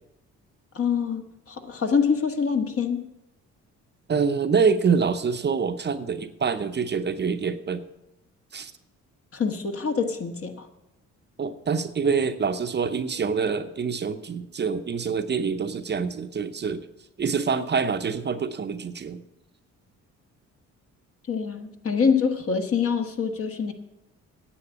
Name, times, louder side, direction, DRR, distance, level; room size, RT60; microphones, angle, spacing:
voice 1, 0.7-3.1 9.3-10.7 21.3-23.7, left 6 dB, 50° left, 6 dB, 1.5 m, -25 dB
voice 2, 4.1-7.8 8.5-8.7 11.4-16.9 17.2-19.2, right 5 dB, 35° right, 9 dB, 0.7 m, -26 dB
10.0 x 7.7 x 8.1 m, 0.89 s
cardioid pair, 90°, 30 cm